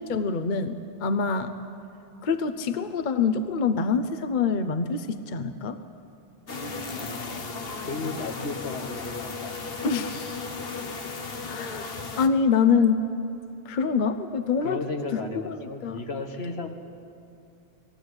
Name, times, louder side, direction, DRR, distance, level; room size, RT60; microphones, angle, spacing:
voice 1, 0.0-1.5 2.2-5.8 9.8-10.2 11.5-13.0 13.7-14.8 15.1-16.0, left 5 dB, 50° left, 9 dB, 0.9 m, -25 dB
sound 1, 6.5-12.3, left 4 dB, 65° left, 1.3 m, -35 dB
voice 2, 6.9-7.5 7.8-9.9 10.4-10.6 14.6-16.7, left 3 dB, 85° left, 4 dB, 1.7 m, -35 dB
19.5 x 15.0 x 9.6 m, 2.7 s
omnidirectional pair, 1.0 m